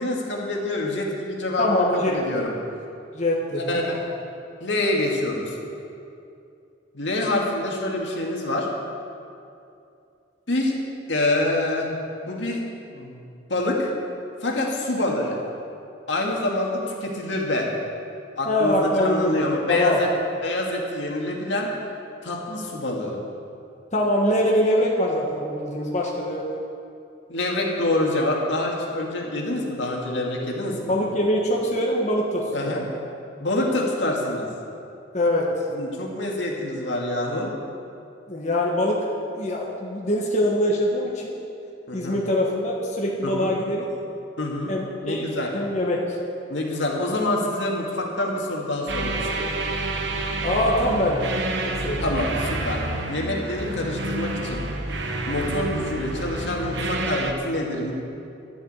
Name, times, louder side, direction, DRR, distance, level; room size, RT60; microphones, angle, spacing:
voice 1, 0.0-2.5 3.7-4.0 4.6-5.6 6.9-8.7 10.5-10.7 11.1-11.9 12.2-12.6 12.9-13.2 13.5-13.9 14.4-15.4 16.1-17.7 18.4-20.1 20.4-21.7 22.2-23.2 27.3-30.9 32.5-32.9 33.4-34.5 35.7-37.5 41.9-42.2 43.2-43.5 44.4-44.7 45.0-45.5 46.5-49.6 52.0-52.8 53.1-54.6 55.3-57.9, left 1 dB, 80° left, -1 dB, 2.0 m, -26 dB
voice 2, 1.6-2.3 3.1-3.8 18.4-19.3 19.7-20.0 23.9-26.5 30.9-32.8 35.1-35.5 38.3-39.0 39.3-41.3 41.9-43.8 44.7-45.3 45.5-46.0 50.4-51.2 51.8-52.0, left 1 dB, 40° left, -3 dB, 1.4 m, -23 dB
sound 1, 48.9-57.3, right 2 dB, 70° right, 1.1 m, -29 dB
11.5 x 7.2 x 8.8 m, 2.6 s
head